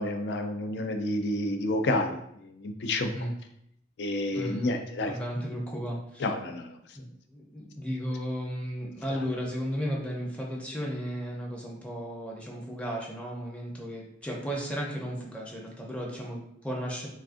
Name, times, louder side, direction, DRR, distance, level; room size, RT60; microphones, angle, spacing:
voice 1, 0.0-3.1 4.0-5.2 6.2-7.0 9.1-9.2, left 1 dB, 70° left, 6 dB, 0.4 m, -30 dB
voice 2, 3.0-3.3 4.3-6.2 7.0-17.1, equal, 5° left, -2 dB, 0.5 m, -35 dB
3.4 x 2.4 x 2.5 m, 0.73 s
head